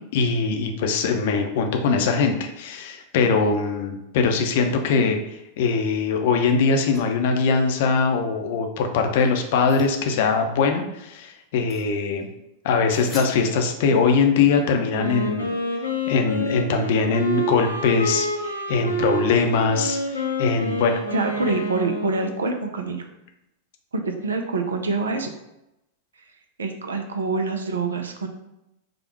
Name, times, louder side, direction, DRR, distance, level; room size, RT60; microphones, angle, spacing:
voice 1, 0.1-5.2 5.6-12.3 12.6-15.5 16.1-21.0, left 5 dB, 50° left, 4 dB, 0.6 m, -22 dB
sound 1, 6.9-7.1 9.2-10.0 11.7-11.9 12.2-12.3 12.9-13.8, left 1 dB, ahead, 1.2 m, -42 dB
Wind instrument woodwind instrument, 14.9-22.5, equal, 90° left, 0.8 m, -28 dB
voice 2, 21.1-23.0 23.9-25.3 26.6-28.3, right 3 dB, 70° right, 5 dB, 0.6 m, -26 dB
5.1 x 2.3 x 4.4 m, 0.89 s
figure-of-eight pair, 90°, 0 cm